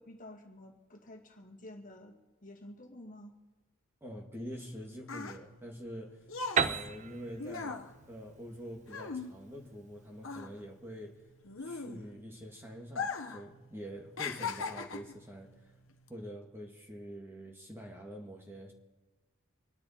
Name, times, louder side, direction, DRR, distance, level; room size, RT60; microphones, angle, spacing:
voice 1, 0.0-3.4, left 1 dB, 35° left, 1 dB, 2.1 m, -51 dB
voice 2, 4.0-6.3 6.6-11.2 11.6-15.8 16.1-18.7, equal, 10° right, 0 dB, 1.8 m, -46 dB
sound 1, 4.6-9.9 10.2-12.3 12.9-13.5 13.7-15.2 15.9-16.1, left 5 dB, 65° left, 1.2 m, -39 dB
Piano, 6.6-10.2, right 6 dB, 35° right, 0.6 m, -35 dB
25.5 x 10.5 x 4.3 m, 1.2 s
head